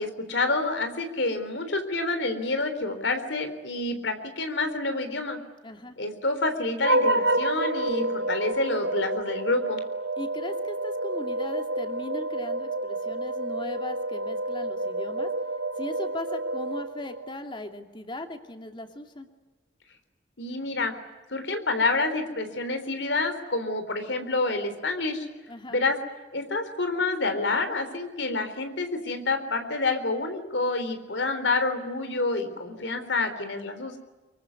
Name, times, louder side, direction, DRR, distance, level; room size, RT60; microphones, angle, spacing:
voice 1, 0.0-5.4 6.0-9.8 20.4-20.9 21.3-25.3 25.7-26.0 26.3-34.0, left 3 dB, 80° left, 8 dB, 3.7 m, -28 dB
voice 2, 5.6-6.0 10.2-15.3 15.8-19.3 25.5-25.8, left 1 dB, 25° left, 5 dB, 2.6 m, -38 dB
sound 1, 6.8-17.3, right 2 dB, 65° right, 1.0 m, -29 dB
25.0 x 23.5 x 9.7 m, 1.2 s
head